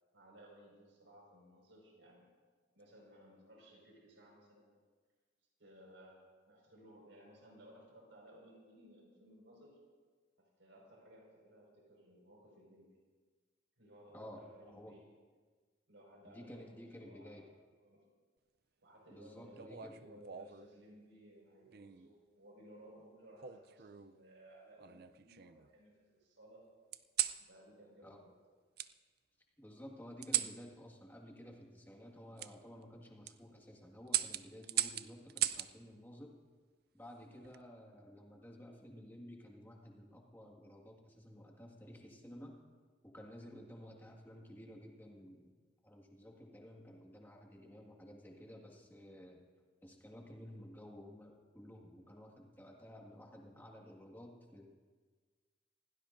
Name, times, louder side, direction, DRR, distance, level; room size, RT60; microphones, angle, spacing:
voice 1, 0.1-2.3 2.7-4.8 5.6-9.8 10.4-13.0 13.8-15.2 15.9-17.4 17.8-18.0 18.8-26.7 27.4-28.4, equal, 90° right, -1 dB, 5.2 m, -59 dB
voice 2, 16.3-17.4 19.1-19.9 28.0-28.2 29.6-36.3 36.9-42.6 43.0-45.5 45.8-49.4 49.8-54.7, equal, 10° left, 0 dB, 1.8 m, -53 dB
sound 1, 19.6-20.7 21.7-22.1 23.4-24.2 24.8-25.7 26.9-27.4 28.8-28.9 30.2-30.6 32.4-32.5 33.1-33.3 34.1-35.7 37.2-37.6, right 12 dB, 55° right, 0.4 m, -38 dB
26.0 x 17.5 x 2.6 m, 1.5 s
head